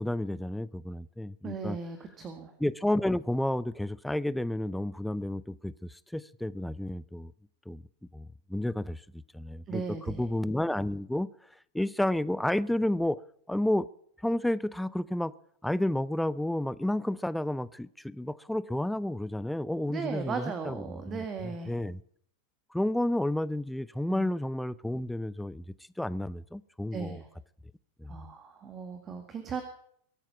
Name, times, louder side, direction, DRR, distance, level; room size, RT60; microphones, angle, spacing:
voice 1, 0.0-1.8 2.6-7.3 7.7-7.8 8.1-9.0 9.3-11.3 11.7-13.2 13.5-13.9 14.2-15.3 15.6-22.0 22.7-25.6 26.0-27.2 28.0-28.2, left 1 dB, 5° left, 0.6 m, -31 dB
voice 2, 1.4-2.5 9.7-10.2 19.9-21.7 24.1-24.3 26.9-27.3 28.1-29.6, right 5 dB, 25° right, 1.8 m, -37 dB
22.5 x 9.1 x 5.8 m
figure-of-eight pair, 90°, 0 cm